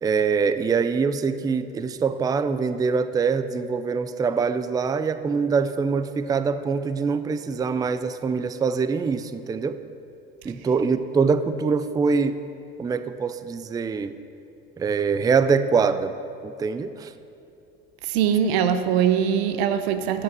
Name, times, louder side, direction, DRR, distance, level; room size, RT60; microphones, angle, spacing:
voice 1, 0.0-9.8 10.4-12.4 12.8-14.1 14.8-16.1 16.4-17.1, right 5 dB, 15° right, 12 dB, 0.3 m, -24 dB
voice 2, 18.0-20.2, right 8 dB, 85° right, 10 dB, 0.7 m, -22 dB
12.5 x 5.8 x 6.0 m, 2.7 s
supercardioid pair, 90°, 29 cm